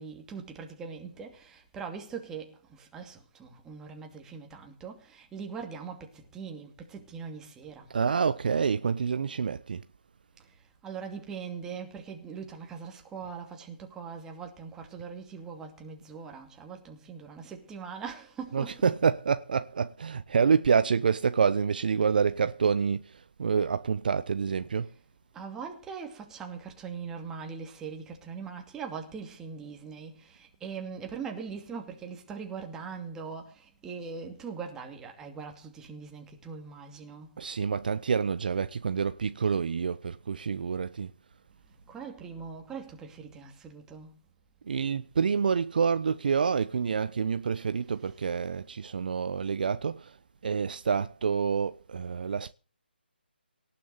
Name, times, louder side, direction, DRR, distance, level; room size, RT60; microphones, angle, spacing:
voice 1, 0.0-7.9 10.4-19.1 21.9-22.3 24.8-25.0 25.3-37.4 41.7-44.2 47.8-48.5, right 6 dB, 10° right, 2.6 m, -41 dB
voice 2, 7.9-9.8 18.5-24.9 37.4-41.1 44.7-50.2 50.4-52.5, right 6 dB, 50° right, 0.9 m, -27 dB
18.5 x 7.3 x 7.5 m
figure-of-eight pair, 155°, 6 cm